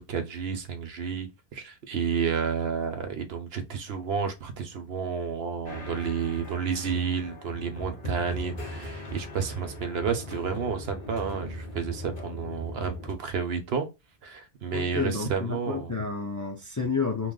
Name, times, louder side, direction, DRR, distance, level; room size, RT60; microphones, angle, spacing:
voice 1, 0.0-13.9 14.2-15.9, right 6 dB, 75° right, 1.0 m, -31 dB
sound 1, 5.7-13.1, equal, 60° left, 1.3 m, -39 dB
voice 2, 14.7-17.3, left 5 dB, 25° left, 0.4 m, -30 dB
3.0 x 2.0 x 3.7 m
omnidirectional pair, 1.0 m